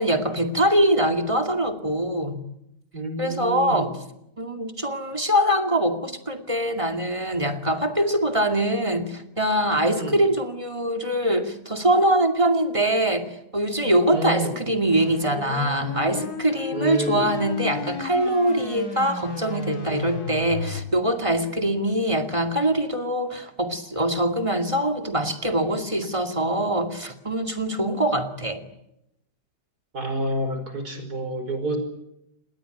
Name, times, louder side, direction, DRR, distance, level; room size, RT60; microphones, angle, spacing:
voice 1, 0.0-2.4 3.2-3.9 4.4-28.6, right 1 dB, 20° right, 6 dB, 2.4 m, -23 dB
voice 2, 2.9-3.8 10.0-10.2 14.1-14.6 16.7-17.3 29.9-31.8, right 1 dB, 70° right, 8 dB, 5.9 m, -28 dB
sound 1, 14.8-20.8, left 4 dB, 70° left, 3.1 m, -33 dB
27.5 x 21.0 x 9.1 m, 0.82 s
omnidirectional pair, 1.7 m